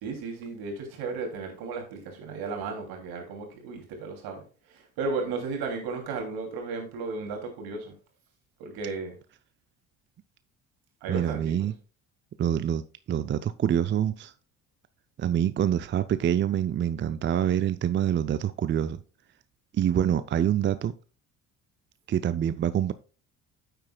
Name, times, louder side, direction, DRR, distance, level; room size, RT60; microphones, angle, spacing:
voice 1, 0.0-7.9 8.6-9.2 11.0-11.7, right 4 dB, 70° right, 2.8 m, -34 dB
voice 2, 11.1-11.7 12.4-14.3 15.2-19.0 19.7-20.9 22.1-22.9, right 10 dB, 30° right, 0.5 m, -26 dB
9.6 x 7.8 x 2.3 m
hypercardioid pair, 60°, 38 cm